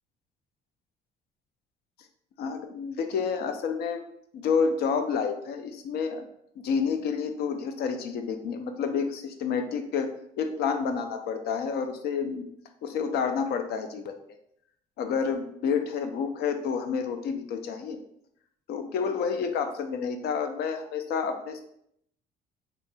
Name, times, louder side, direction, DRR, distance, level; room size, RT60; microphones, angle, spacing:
voice 1, 2.4-4.0 4.3-6.2 6.6-12.5 12.8-14.1 15.0-18.0 18.7-21.6, left 6 dB, 70° left, 7 dB, 0.5 m, -29 dB
4.0 x 2.8 x 2.3 m, 0.71 s
cardioid pair, 110°, 17 cm